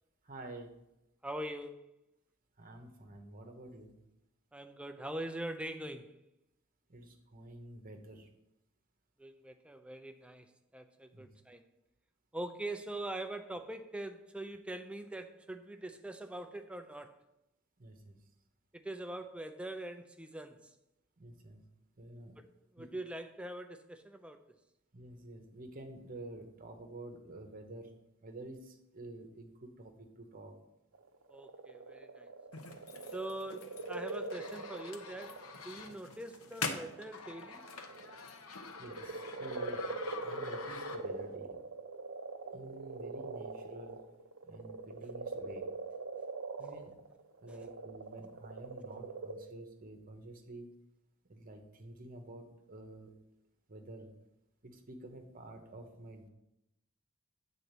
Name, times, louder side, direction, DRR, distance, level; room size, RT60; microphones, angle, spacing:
voice 1, 0.2-0.7 2.6-4.0 6.9-8.3 11.1-11.3 17.8-18.2 21.2-21.6 22.0-22.4 22.8-22.9 24.9-28.0 28.2-30.5 38.8-39.9 40.2-41.6 42.5-44.1 44.4-45.7 46.6-47.0 47.4-50.7 51.3-53.1 53.7-54.1 54.6-56.3, right 1 dB, 40° right, 4 dB, 1.1 m, -49 dB
voice 2, 1.2-1.9 4.5-6.1 9.2-11.6 12.3-17.2 18.7-20.7 22.4-22.5 22.7-24.4 31.3-32.3 33.1-37.7 47.5-47.7, right 1 dB, 5° right, 7 dB, 0.5 m, -43 dB
sound 1, 30.9-36.0 36.5-38.2 38.6-49.3, right 3 dB, 75° right, 0.7 m, -43 dB
sound 2, 32.5-41.4, left 4 dB, 90° left, 0.9 m, -45 dB
7.7 x 4.1 x 6.7 m, 0.87 s
head